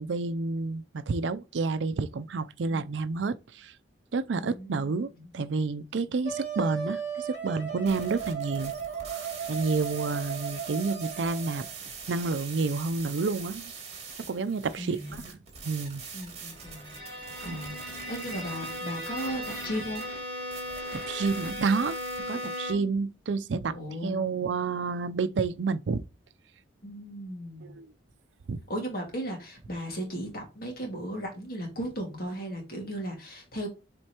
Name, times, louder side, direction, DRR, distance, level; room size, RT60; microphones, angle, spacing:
voice 1, 0.0-3.7 4.1-5.1 5.3-8.7 9.0-11.7 12.1-13.7 14.3-15.4 15.6-16.0 17.5-17.6 20.9-23.8 24.0-26.0 27.6-27.9 28.5-28.6, right 4 dB, 85° right, 0.5 m, -30 dB
voice 2, 4.3-5.3 14.8-15.2 16.1-17.0 17.4-20.0 23.7-24.5 26.8-27.7 28.7-33.7, equal, 55° left, 2.0 m, -36 dB
Wind instrument woodwind instrument, 6.2-11.7, right 6 dB, 85° left, 2.7 m, -36 dB
sound 1, 7.9-22.7, right 5 dB, 35° right, 2.4 m, -44 dB
Bowed string instrument, 16.6-23.0, left 1 dB, 20° left, 3.5 m, -37 dB
7.7 x 4.4 x 2.9 m
head